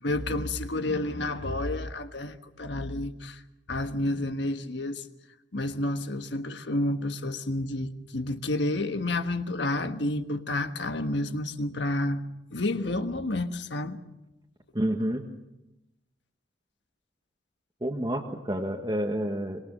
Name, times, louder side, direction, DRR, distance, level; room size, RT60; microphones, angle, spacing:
voice 1, 0.0-3.4 3.7-5.0 5.5-12.2 12.5-14.0, left 1 dB, 65° left, 1.4 m, -30 dB
voice 2, 14.7-15.3 17.8-19.6, right 1 dB, 20° right, 1.4 m, -29 dB
25.5 x 23.0 x 6.5 m
head